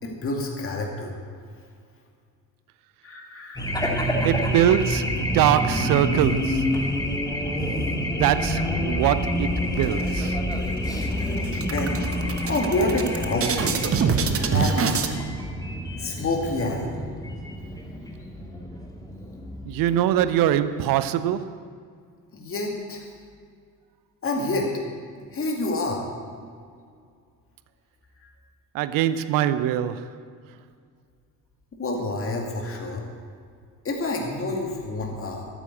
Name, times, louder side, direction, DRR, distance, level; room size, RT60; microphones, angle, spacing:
voice 1, 0.0-1.1 3.0-3.7 11.6-12.0 12.4-13.7 14.4-15.1 16.0-16.9 22.3-23.1 24.2-24.8 25.3-26.0 31.7-33.0 33.8-35.5, left 2 dB, 25° left, 2.4 m, -28 dB
Race car auto racing / Alarm, 3.6-20.5, equal, 10° left, 2.2 m, -28 dB
voice 2, 4.2-6.7 8.1-10.4 19.7-21.6 28.7-30.1, right 11 dB, 40° right, 0.7 m, -23 dB
sound 1, 9.8-10.6 10.9-11.1 11.4-15.1, right 6 dB, 25° right, 1.1 m, -26 dB
13.0 x 9.0 x 8.0 m
figure-of-eight pair, 60°, 50 cm